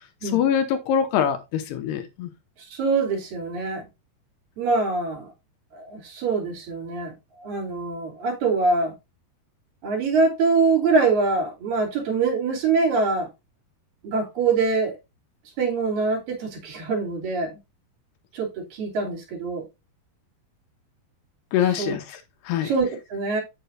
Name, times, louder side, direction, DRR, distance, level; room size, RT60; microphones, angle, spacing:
voice 1, 0.3-2.3 21.5-22.0 22.5-22.7, left 9 dB, 80° left, 2.9 m, -23 dB
voice 2, 2.6-3.9 4.6-5.3 5.7-8.9 9.8-13.3 14.0-15.0 15.6-17.6 18.3-19.6 21.6-21.9 22.6-23.4, right 4 dB, 60° right, 4.5 m, -24 dB
8.5 x 7.8 x 2.6 m
omnidirectional pair, 4.8 m